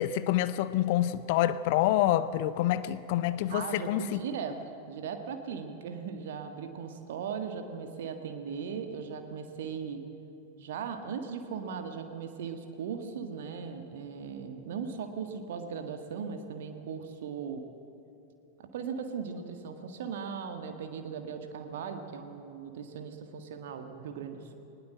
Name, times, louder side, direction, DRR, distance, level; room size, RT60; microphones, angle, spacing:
voice 1, 0.0-4.2, left 13 dB, 50° left, 0.6 m, -27 dB
voice 2, 3.5-4.6 4.9-10.0 10.6-17.6 18.6-24.5, right 6 dB, 55° right, 1.6 m, -38 dB
20.0 x 20.0 x 7.8 m
figure-of-eight pair, 90°, 0 cm